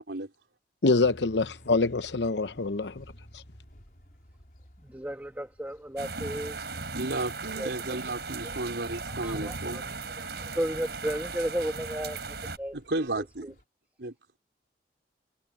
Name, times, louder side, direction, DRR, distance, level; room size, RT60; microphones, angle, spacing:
voice 1, 0.8-3.0, left 3 dB, 80° left, 0.9 m, -25 dB
sound 1, 1.0-13.6, equal, 50° left, 4.9 m, -55 dB
voice 2, 4.8-6.7 7.6-8.0 9.2-12.8 13.4-13.5, equal, 10° right, 1.8 m, -34 dB
sound 2, 6.0-12.6, right 4 dB, 70° right, 5.0 m, -37 dB
voice 3, 7.0-9.8 12.7-13.5 14.0-14.1, right 2 dB, 85° right, 4.0 m, -33 dB
head